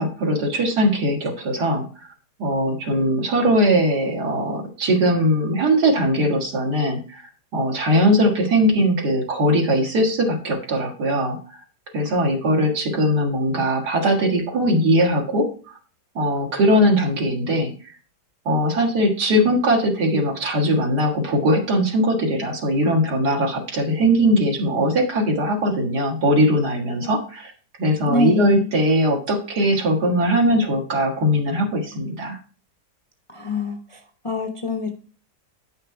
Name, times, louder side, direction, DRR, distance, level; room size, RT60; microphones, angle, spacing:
voice 1, 0.0-1.9 2.4-11.4 11.9-15.5 16.2-17.9 18.5-27.5 27.8-32.4, equal, 70° right, 1 dB, 2.3 m, -20 dB
voice 2, 28.0-28.7 33.3-34.0 34.2-34.9, left 3 dB, 35° left, 3 dB, 0.5 m, -24 dB
9.3 x 5.7 x 4.5 m, 0.39 s
omnidirectional pair, 1.8 m